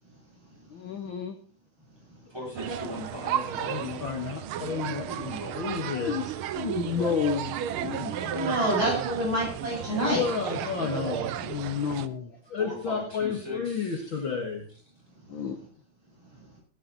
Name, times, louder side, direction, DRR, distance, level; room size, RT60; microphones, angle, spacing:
voice 1, 0.7-1.4 5.9-6.3 6.5-7.6 10.8-10.9 11.4-12.3 15.3-15.6, left 7 dB, 65° left, 9 dB, 1.2 m, -30 dB
voice 2, 2.3-4.2 5.1-5.8 7.8-8.6 12.6-14.3, left 2 dB, 10° right, -3 dB, 7.3 m, -39 dB
sound 1, 2.6-12.1, right 10 dB, 85° right, 1.1 m, -34 dB
voice 3, 3.6-5.0 5.6-6.2 7.0-7.1 9.9-11.4 12.5-14.6, left 6 dB, 50° left, 2 dB, 2.1 m, -31 dB
voice 4, 8.3-10.7, right 1 dB, 40° right, -2 dB, 8.1 m, -28 dB
17.0 x 11.0 x 4.1 m, 0.40 s
omnidirectional pair, 3.4 m